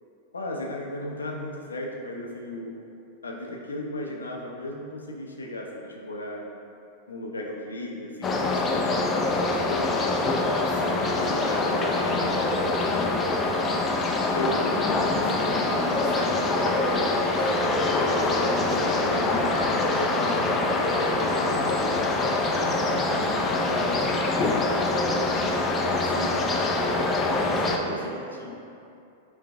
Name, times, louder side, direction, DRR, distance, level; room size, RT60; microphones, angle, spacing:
voice 1, 0.3-2.8 3.2-6.5 7.1-10.2 11.2-12.3 12.9-13.2 14.3-14.8 15.2-16.0 18.7-19.3 19.6-22.2 22.5-23.2 26.0-26.5 27.4-28.0 28.4-28.5, left 1 dB, 90° left, 0 dB, 0.5 m, -36 dB
sound 1, 8.2-27.8, left 2 dB, 25° left, 0.4 m, -24 dB
voice 2, 10.7-12.6 14.7-19.5 20.7-21.7 23.3-25.7 27.8-28.5, equal, 55° right, -7 dB, 1.3 m, -38 dB
3.3 x 3.1 x 3.5 m, 2.6 s
hypercardioid pair, 95°, 0 cm